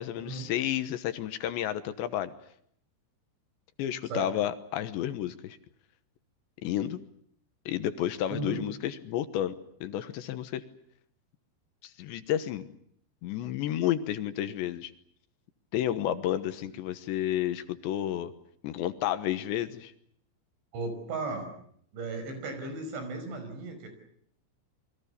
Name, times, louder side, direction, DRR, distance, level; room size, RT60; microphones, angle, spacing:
voice 1, 0.0-2.3 3.8-5.6 6.6-7.0 7.7-9.6 9.8-10.6 11.8-12.7 13.2-14.9 15.7-18.3 18.6-19.9, left 11 dB, 75° left, 11 dB, 3.3 m, -31 dB
voice 2, 20.7-21.5 21.9-23.9, right 3 dB, 70° right, 8 dB, 7.8 m, -35 dB
28.5 x 23.5 x 6.8 m, 0.67 s
omnidirectional pair, 5.5 m